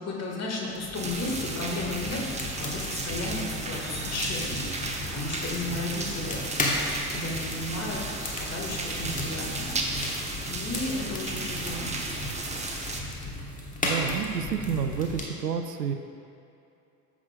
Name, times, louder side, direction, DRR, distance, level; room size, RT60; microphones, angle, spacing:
voice 1, 0.0-4.7 5.1-9.7 10.1-11.9, left 2 dB, 35° left, -2 dB, 1.9 m, -34 dB
sound 1, 0.7-15.2, left 2 dB, 15° left, 1.3 m, -35 dB
sound 2, 0.9-13.0, right 2 dB, 15° right, 0.8 m, -35 dB
voice 2, 13.8-15.9, right 7 dB, 80° right, 7 dB, 0.6 m, -30 dB
14.0 x 6.0 x 2.4 m, 2.7 s
figure-of-eight pair, 65°, 47 cm